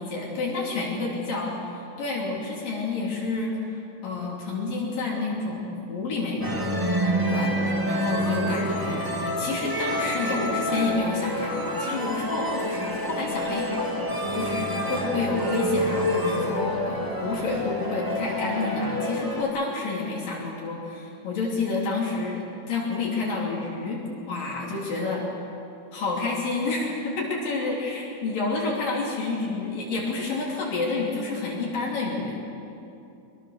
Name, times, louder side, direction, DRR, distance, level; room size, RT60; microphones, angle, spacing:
voice 1, 0.0-6.7 7.3-7.5 7.9-14.0 14.3-25.2 25.9-32.4, left 3 dB, 55° left, -4 dB, 4.6 m, -29 dB
sound 1, 6.4-19.4, equal, 10° right, 1.4 m, -27 dB
25.0 x 23.5 x 6.5 m, 2.7 s
omnidirectional pair, 4.7 m